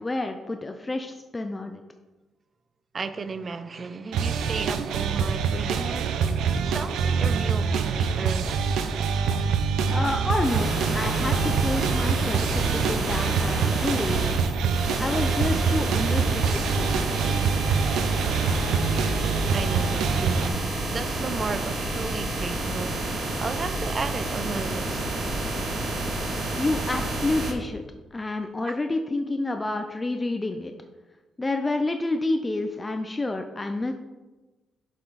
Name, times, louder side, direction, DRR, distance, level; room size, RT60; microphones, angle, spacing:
voice 1, 0.0-1.8 9.9-14.4 15.0-16.9 26.5-27.8 28.1-30.7 31.4-33.9, left 2 dB, 20° left, 0.5 m, -29 dB
voice 2, 2.9-6.3 6.6-8.7 19.5-20.7 20.9-23.1 23.4-25.0 28.6-28.8, right 4 dB, 35° right, 0.6 m, -34 dB
sound 1, 4.1-20.5, right 6 dB, 85° right, 0.7 m, -25 dB
sound 2, 10.4-27.5, right 2 dB, 70° right, 2.0 m, -29 dB
8.0 x 6.7 x 4.1 m
cardioid pair, 105°, 0 cm